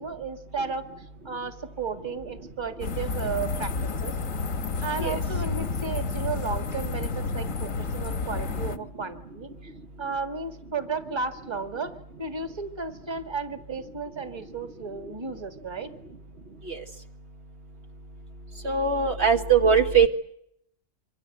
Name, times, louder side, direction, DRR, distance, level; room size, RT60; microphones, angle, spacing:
voice 1, 0.0-4.1 4.8-9.7 10.0-15.9, right 4 dB, 20° right, 8 dB, 1.8 m, -34 dB
sound 1, 2.8-8.8, left 4 dB, 85° left, 1.6 m, -30 dB
voice 2, 18.7-20.1, right 6 dB, 55° right, 4 dB, 1.8 m, -20 dB
27.0 x 24.0 x 7.9 m, 0.73 s
omnidirectional pair, 1.3 m